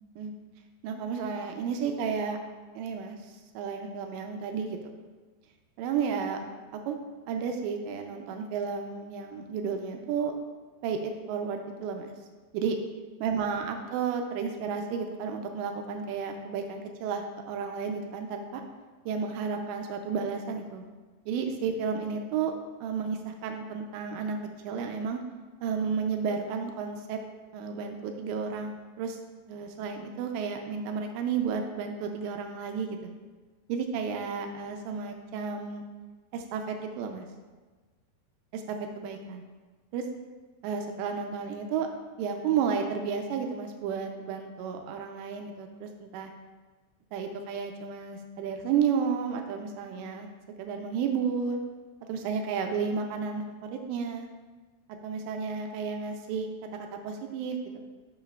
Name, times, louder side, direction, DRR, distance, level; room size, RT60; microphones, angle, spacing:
voice 1, 0.8-2.4 2.8-4.8 5.8-6.4 6.7-7.0 7.3-10.3 10.8-12.1 12.5-12.8 13.2-18.6 19.1-20.9 21.3-22.5 22.8-24.4 24.6-25.2 25.6-27.2 27.5-29.2 29.5-33.1 33.7-35.8 36.3-37.3 38.5-39.4 39.9-40.1 40.6-41.9 42.2-46.3 47.1-50.3 50.6-51.6 52.1-54.3 55.0-56.5 57.0-57.8, right 6 dB, 85° right, 4 dB, 2.6 m, -32 dB
7.6 x 6.5 x 2.3 m, 1.3 s
omnidirectional pair, 5.3 m